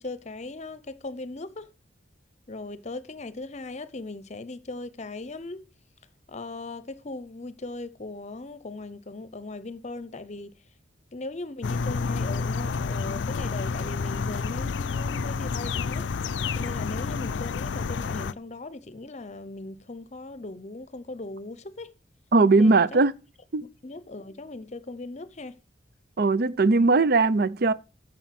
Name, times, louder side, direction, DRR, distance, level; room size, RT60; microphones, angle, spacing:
voice 1, 0.0-1.7 2.5-5.7 6.3-10.6 11.1-16.1 16.5-21.9 22.6-23.0 23.8-25.6, left 2 dB, 40° left, 0.8 m, -38 dB
sound 1, 11.6-18.3, left 5 dB, 75° left, 0.4 m, -29 dB
voice 2, 22.3-23.1 23.5-23.6 26.2-27.7, right 3 dB, 55° right, 0.6 m, -19 dB
9.1 x 6.4 x 5.9 m
head